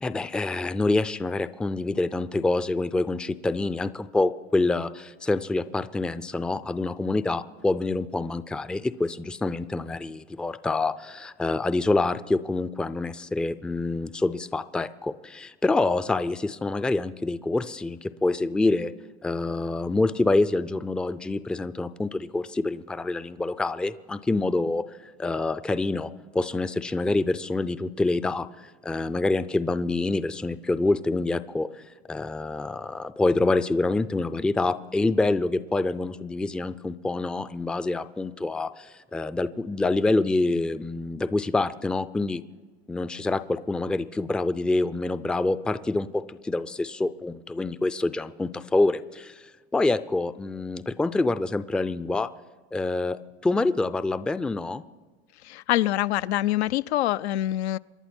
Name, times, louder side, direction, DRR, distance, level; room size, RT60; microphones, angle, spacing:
voice 1, 0.0-18.9 19.2-24.8 25.2-31.7 32.1-42.4 42.9-49.4 49.7-52.3 52.7-54.8, left 2 dB, 5° left, 13 dB, 0.4 m, -26 dB
voice 2, 55.4-57.8, left 14 dB, 85° left, 15 dB, 0.5 m, -25 dB
27.0 x 11.5 x 4.4 m, 1.4 s
hypercardioid pair, 105°, 32 cm